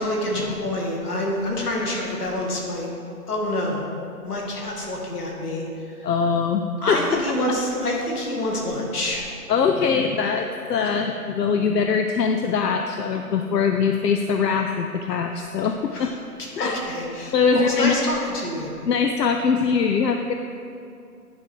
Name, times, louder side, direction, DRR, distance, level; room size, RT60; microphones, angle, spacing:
voice 1, 0.0-2.9 3.3-3.8 4.2-6.1 6.8-9.3 15.9-16.1 16.6-18.7, left 1 dB, 70° left, -2 dB, 2.1 m, -27 dB
voice 2, 6.0-7.0 7.5-7.6 9.5-16.1 16.6-16.7 17.3-17.9 18.8-20.3, left 5 dB, 90° left, 5 dB, 0.7 m, -22 dB
10.0 x 5.1 x 4.6 m, 2.5 s
hypercardioid pair, 165°, 48 cm